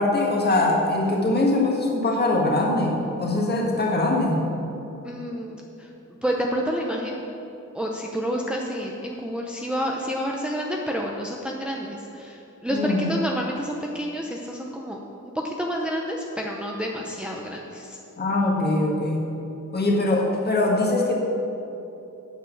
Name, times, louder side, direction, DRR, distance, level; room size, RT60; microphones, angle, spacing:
voice 1, 0.0-4.4 12.7-13.0 18.2-19.3 19.7-21.1, left 2 dB, 35° left, -1 dB, 1.7 m, -22 dB
voice 2, 5.0-5.9 6.2-7.2 7.7-15.0 15.2-18.0, equal, 5° right, -1 dB, 0.6 m, -29 dB
9.0 x 7.4 x 6.8 m, 2.9 s
wide cardioid pair, 170°, 30 cm